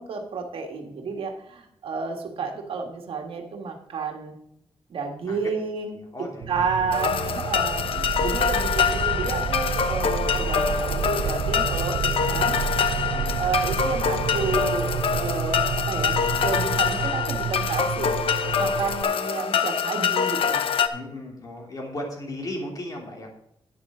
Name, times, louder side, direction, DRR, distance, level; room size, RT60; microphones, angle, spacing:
voice 1, 0.0-4.3 4.9-6.0 6.5-12.6 13.4-18.1 18.6-20.7, right 5 dB, 65° right, 3 dB, 1.7 m, -31 dB
voice 2, 6.1-6.8 13.1-13.5 14.2-14.6 20.9-23.3, left 1 dB, 35° left, 0 dB, 3.1 m, -36 dB
sound 1, 6.4-19.0, right 8 dB, 90° right, 0.7 m, -30 dB
sound 2, 6.9-20.9, left 7 dB, 65° left, 0.9 m, -25 dB
11.0 x 9.5 x 3.8 m, 0.76 s
wide cardioid pair, 150°, 10 cm